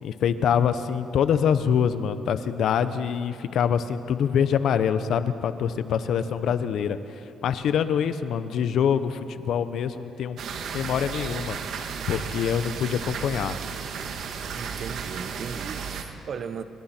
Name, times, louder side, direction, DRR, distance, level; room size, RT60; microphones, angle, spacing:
voice 1, 0.0-7.0 7.4-10.4 10.7-11.6 12.1-13.6, left 8 dB, 75° left, 11 dB, 1.0 m, -25 dB
voice 2, 6.2-6.5 14.5-16.6, right 6 dB, 55° right, 11 dB, 1.2 m, -37 dB
sound 1, 10.4-16.0, right 6 dB, 75° right, 1.8 m, -34 dB
29.0 x 23.5 x 4.5 m, 2.9 s
cardioid pair, 90°, 0 cm